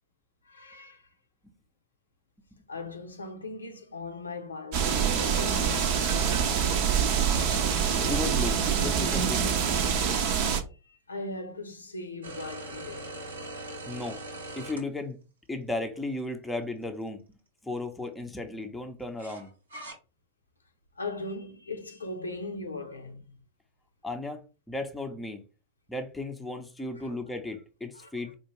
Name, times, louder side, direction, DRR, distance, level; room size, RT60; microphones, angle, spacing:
voice 1, 0.5-1.0 2.7-5.9 10.9-13.1 21.0-23.2 27.0-27.1 27.9-28.1, left 2 dB, 75° left, 0.6 m, -39 dB
sound 1, 4.7-10.6, right 7 dB, 45° right, 0.7 m, -25 dB
voice 2, 7.9-9.6 13.9-14.2 14.6-15.2 15.5-17.4 17.6-19.5 24.0-25.4 25.9-28.4, left 2 dB, 5° left, 0.7 m, -35 dB
sound 2, 12.2-14.8 15.8-15.9 19.2-19.9, right 2 dB, 75° right, 1.1 m, -41 dB
4.4 x 2.5 x 3.0 m
figure-of-eight pair, 90°, 0 cm